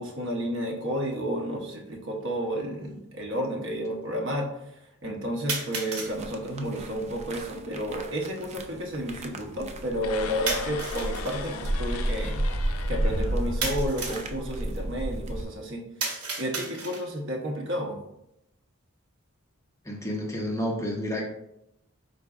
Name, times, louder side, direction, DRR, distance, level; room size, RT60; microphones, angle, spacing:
voice 1, 0.0-12.4 12.9-15.9 16.4-18.0, equal, 55° right, 1 dB, 0.8 m, -31 dB
sound 1, 1.1-1.2 2.2-2.3 5.5-6.2 10.5-11.4 13.6-14.3 16.0-17.2, right 3 dB, 80° right, 1.0 m, -33 dB
sound 2, 6.1-15.4, right 1 dB, 30° right, 0.3 m, -32 dB
sound 3, 10.0-14.1, left 6 dB, 75° left, 0.4 m, -39 dB
voice 2, 19.8-21.3, equal, 15° left, 0 dB, 0.6 m, -30 dB
4.8 x 3.9 x 2.3 m, 0.81 s
head